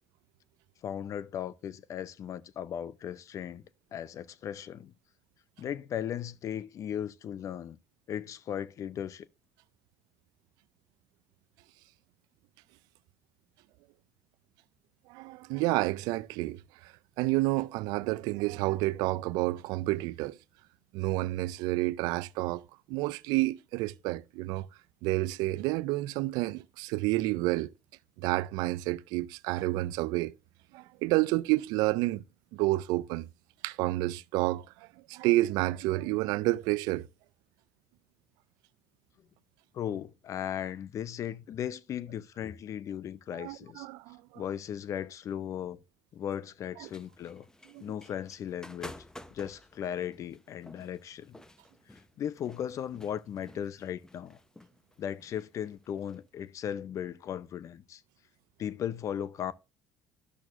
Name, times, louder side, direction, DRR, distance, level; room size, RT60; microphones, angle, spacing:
voice 1, 0.8-3.6 3.9-4.9 5.6-7.8 8.1-9.3 39.7-43.9 44.4-45.8 46.1-47.5 47.8-48.9 49.3-51.4 51.9-54.4 55.0-58.0 58.6-59.5, left 9 dB, 50° left, 0.6 m, -37 dB
voice 2, 15.1-20.4 20.9-22.6 22.9-24.7 25.0-27.7 28.2-30.3 30.7-32.2 32.5-33.3 33.6-37.1 43.3-44.4 46.8-46.9 47.7-47.8, right 19 dB, 75° right, 0.4 m, -30 dB
sound 1, 46.8-56.2, left 1 dB, 10° left, 0.8 m, -52 dB
12.5 x 6.2 x 2.5 m
supercardioid pair, 80°, 7 cm